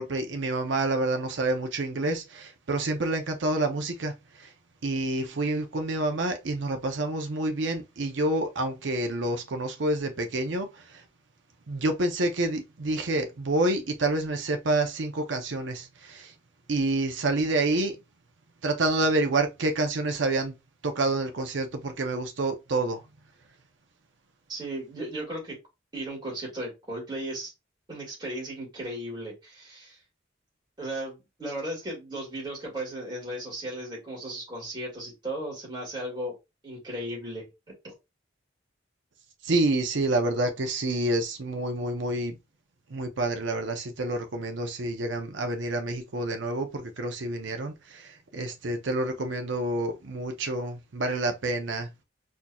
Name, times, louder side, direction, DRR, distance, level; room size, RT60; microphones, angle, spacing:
voice 1, 0.0-4.5 4.8-11.0 11.7-16.3 16.7-18.0 18.6-20.5 20.8-23.0 39.4-42.4 42.9-51.9, right 2 dB, 70° right, 0.7 m, -28 dB
voice 2, 24.5-25.6 25.9-27.5 27.9-30.0 30.8-36.3 36.6-37.5 37.8-37.9, right 1 dB, 25° right, 2.1 m, -36 dB
4.4 x 2.6 x 2.3 m
head